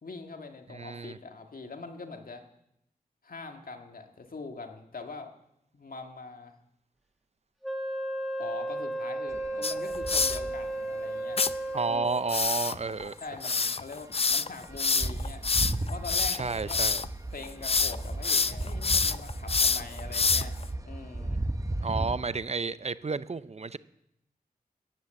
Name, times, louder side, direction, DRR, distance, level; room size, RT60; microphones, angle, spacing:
voice 1, 0.0-2.4 3.2-5.3 5.7-6.6 8.4-11.4 11.9-12.2 13.2-15.5 15.9-16.8 17.3-20.6 20.8-21.4, left 3 dB, 65° left, 5 dB, 1.9 m, -43 dB
voice 2, 0.7-1.2 11.7-13.1 16.3-17.0 21.8-23.8, right 4 dB, 45° right, 16 dB, 0.6 m, -31 dB
Wind instrument woodwind instrument, 7.6-12.4, right 1 dB, ahead, 2.1 m, -34 dB
sound 1, 9.3-11.0 11.5-11.8 12.4-13.1 13.3-13.4 13.7-13.8 13.9-22.2, right 1 dB, 20° right, 1.1 m, -35 dB
sound 2, 9.6-10.4 11.4-11.5 12.3-17.1 17.4-18.0 18.2-20.6, left 4 dB, 40° left, 0.5 m, -26 dB
14.0 x 10.0 x 7.8 m, 0.81 s
cardioid pair, 55°, 16 cm